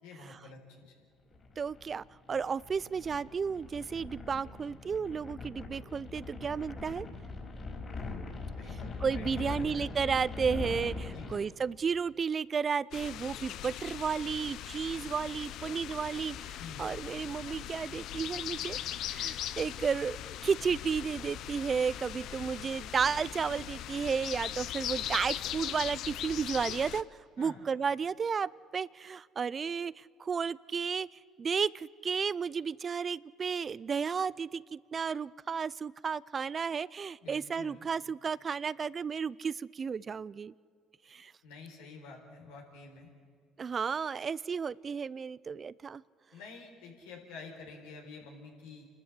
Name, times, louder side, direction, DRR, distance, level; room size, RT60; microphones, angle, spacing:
voice 1, 0.0-1.0 8.6-9.9 11.1-11.3 16.6-16.8 27.4-27.6 37.2-37.8 41.4-43.1 46.3-48.9, left 4 dB, 85° left, 1 dB, 4.1 m, -49 dB
sound 1, 1.3-11.4, left 3 dB, 40° left, 5.0 m, -41 dB
voice 2, 1.6-7.1 9.0-18.8 19.1-20.2 20.4-27.0 27.4-31.1 31.4-40.5 41.1-41.3 43.6-46.0, right 6 dB, 40° right, 21 dB, 0.4 m, -33 dB
sound 2, 12.9-27.0, left 11 dB, 65° left, 0.7 m, -40 dB
28.5 x 13.0 x 8.2 m, 2.1 s
hypercardioid pair, 65°, 0 cm